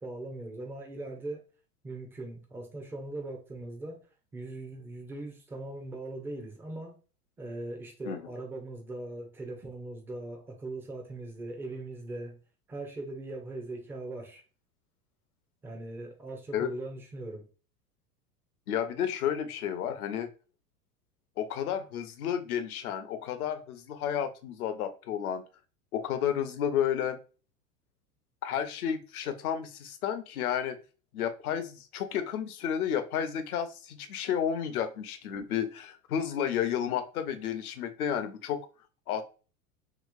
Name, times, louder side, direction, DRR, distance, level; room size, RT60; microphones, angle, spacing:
voice 1, 0.0-1.4 1.8-4.1 4.3-7.0 7.4-12.4 12.7-14.4 15.6-17.5, right 2 dB, 5° right, 0.4 m, -40 dB
voice 2, 18.7-20.3 21.4-25.4 25.9-27.2 28.4-30.8 31.1-38.7 39.1-39.2, left 9 dB, 65° left, 0.7 m, -31 dB
3.0 x 2.9 x 2.3 m
figure-of-eight pair, 90°, 48 cm